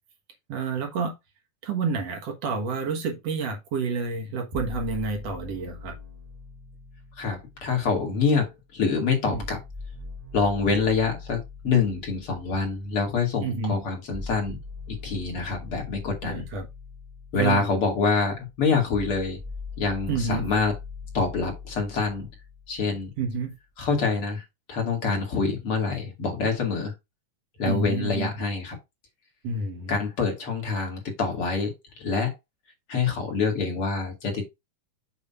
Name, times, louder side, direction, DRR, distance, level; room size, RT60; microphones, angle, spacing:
voice 1, 0.5-1.2 1.6-6.0 9.2-9.5 13.4-13.8 16.2-16.7 17.3-17.8 20.1-20.4 23.2-23.5 27.7-28.3 29.4-29.9, right 4 dB, 60° right, 2.2 m, -29 dB
sound 1, 4.5-8.5 9.3-23.3, left 4 dB, 40° right, 0.5 m, -41 dB
voice 2, 7.2-9.6 10.3-14.6 14.9-16.5 17.3-19.4 19.8-20.7 21.1-22.3 22.7-23.1 23.8-24.4 24.7-26.9 27.6-28.8 29.9-32.3 32.9-34.5, left 4 dB, 50° left, 2.7 m, -26 dB
7.2 x 3.0 x 5.5 m
omnidirectional pair, 3.5 m